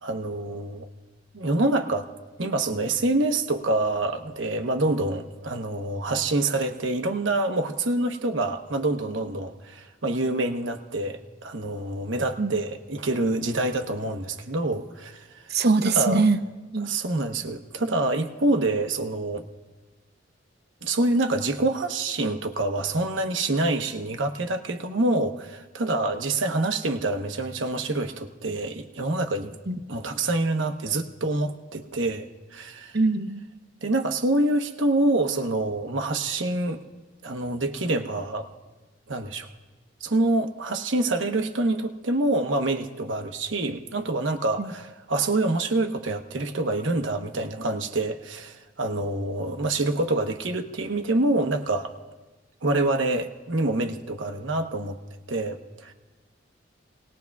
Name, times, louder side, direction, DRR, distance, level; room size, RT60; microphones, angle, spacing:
voice 1, 0.0-0.9 1.3-2.1 2.4-15.5 15.8-16.3 16.8-19.5 20.8-29.6 29.9-33.0 33.8-36.8 37.2-38.5 39.1-39.5 40.0-51.9 52.6-55.0 55.3-55.9, right 2 dB, 80° right, 6 dB, 1.1 m, -26 dB
voice 2, 15.5-16.4 16.7-16.9 29.7-29.8 32.9-33.4, right 3 dB, 60° right, 8 dB, 0.7 m, -22 dB
28.5 x 19.5 x 2.4 m, 1.2 s
head